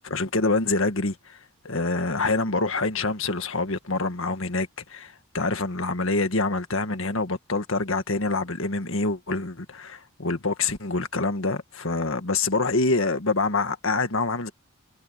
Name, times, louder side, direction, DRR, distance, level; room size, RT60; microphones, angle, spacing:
voice 1, 0.0-1.4 1.6-14.5, left 3 dB, 65° left, 1.8 m, -26 dB
head